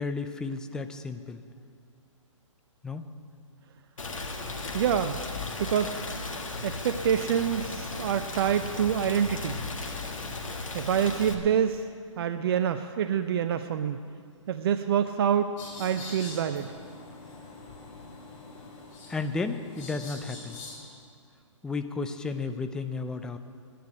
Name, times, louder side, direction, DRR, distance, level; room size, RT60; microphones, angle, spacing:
voice 1, 0.0-1.4 2.8-3.0 19.1-20.6 21.6-23.4, left 4 dB, 5° left, 8 dB, 0.4 m, -33 dB
Rain, 4.0-11.3, left 3 dB, 80° left, 1.7 m, -36 dB
voice 2, 4.7-5.2 5.6-6.0 6.6-9.6 10.7-11.9 12.2-14.0 14.5-15.5 15.8-16.7, right 8 dB, 50° right, 9 dB, 0.5 m, -26 dB
sound 1, 15.6-20.8, left 3 dB, 30° left, 4.1 m, -44 dB
10.5 x 10.0 x 9.5 m, 2.2 s
hypercardioid pair, 135°, 17 cm